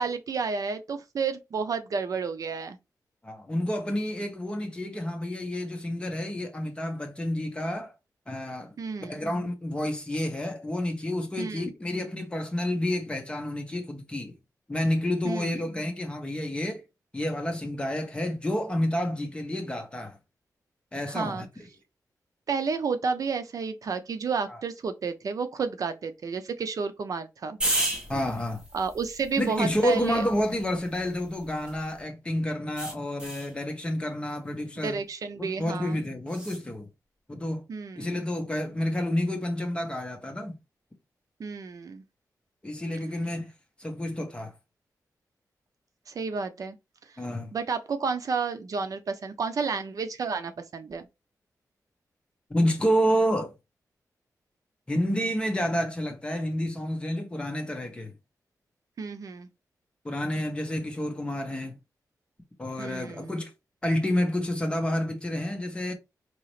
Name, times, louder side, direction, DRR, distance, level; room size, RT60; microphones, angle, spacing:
voice 1, 0.0-2.8 8.8-9.2 11.4-11.7 15.2-15.5 21.1-21.5 22.5-27.6 28.7-30.3 34.8-36.0 37.7-38.1 41.4-42.0 46.1-46.8 47.5-51.0 59.0-59.5 62.8-63.3, right 5 dB, 60° right, 0.6 m, -31 dB
voice 2, 3.2-7.9 8.3-14.3 14.7-16.8 17.1-20.2 20.9-21.5 24.5-24.6 28.1-28.6 29.4-35.0 35.4-36.9 37.3-37.6 38.0-40.6 42.6-43.5 43.8-44.5 47.2-47.5 52.5-53.5 54.9-58.1 60.0-61.7 62.6-63.5 63.8-65.9, equal, 15° left, 1.0 m, -29 dB
sound 1, 27.6-32.0 32.8-33.5 36.3-36.6, right 1 dB, 15° right, 1.2 m, -34 dB
5.3 x 2.8 x 3.1 m
wide cardioid pair, 160°, 7 cm